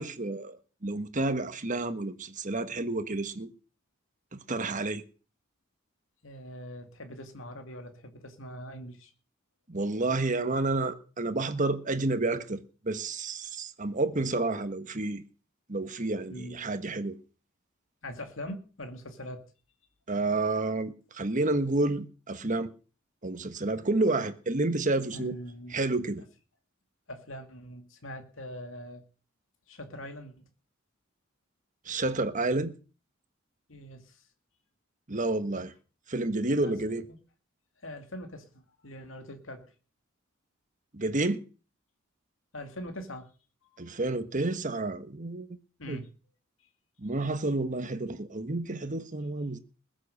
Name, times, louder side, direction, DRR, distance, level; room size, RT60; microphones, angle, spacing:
voice 1, 0.0-3.5 4.3-5.0 9.7-15.2 15.7-17.2 20.1-22.7 23.2-25.4 25.7-26.2 31.9-32.7 35.1-35.7 36.1-37.1 40.9-41.4 43.8-45.5 45.9-46.0 47.0-49.6, right 2 dB, 40° right, 1.4 m, -30 dB
voice 2, 6.2-9.1 16.3-16.7 18.0-19.4 25.1-25.7 27.1-29.0 29.7-30.5 33.7-34.2 36.6-36.8 37.8-39.7 42.5-43.3 43.8-43.9 45.8-46.1, equal, 70° left, 2.4 m, -42 dB
20.5 x 7.6 x 6.6 m
head